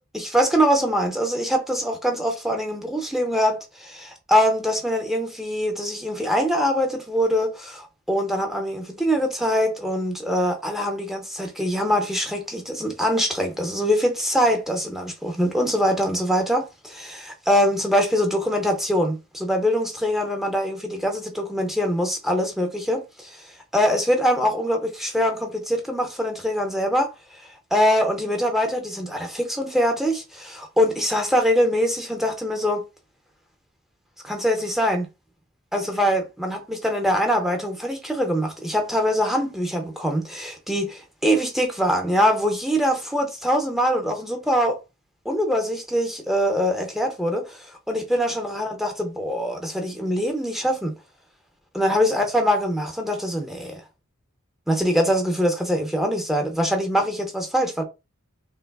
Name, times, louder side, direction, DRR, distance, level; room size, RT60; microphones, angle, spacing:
voice 1, 0.1-23.4 23.7-27.1 27.7-32.8 34.2-35.1 35.7-44.8 45.3-50.9 51.7-53.8 54.7-57.8, equal, ahead, 0.5 m, -23 dB
3.0 x 2.3 x 2.2 m
head